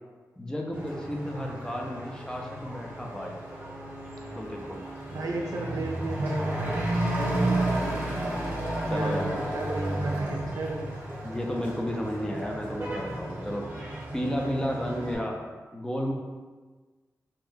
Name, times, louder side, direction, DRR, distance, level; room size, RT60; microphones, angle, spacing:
voice 1, 0.4-3.4 4.3-4.8 5.1-5.2 8.9-9.4 11.2-13.6 14.1-15.4 15.7-16.1, equal, 10° left, 0 dB, 0.4 m, -32 dB
Truck / Accelerating revving vroom, 0.7-15.2, right 1 dB, 30° right, 0.8 m, -32 dB
voice 2, 5.1-8.2 8.9-10.9, right 2 dB, 80° right, 0 dB, 0.4 m, -34 dB
2.6 x 2.1 x 3.6 m, 1.3 s
wide cardioid pair, 110°, 6 cm